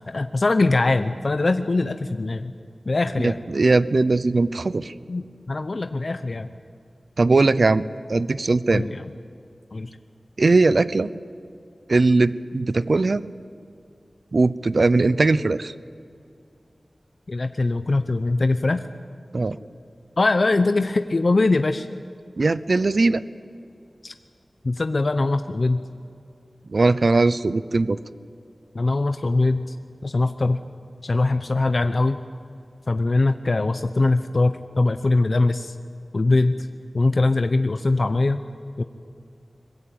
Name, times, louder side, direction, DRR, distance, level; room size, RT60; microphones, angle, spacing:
voice 1, 0.1-2.5 2.8-3.4 5.1-6.5 8.7-9.1 9.7-9.9 17.3-18.8 20.2-21.9 24.0-24.1 24.6-25.8 28.7-29.6 30.0-30.6 31.0-32.2 32.9-35.8 36.1-36.7 36.9-38.4 38.8-38.9, left 2 dB, 50° left, 9 dB, 0.8 m, -22 dB
voice 2, 3.2-4.9 7.2-7.8 8.1-8.8 10.4-11.1 11.9-13.2 14.3-15.7 19.3-19.6 22.4-23.2 26.7-28.0, right 3 dB, 60° right, 16 dB, 0.7 m, -19 dB
24.0 x 21.5 x 8.8 m, 2.4 s
wide cardioid pair, 85°, 0 cm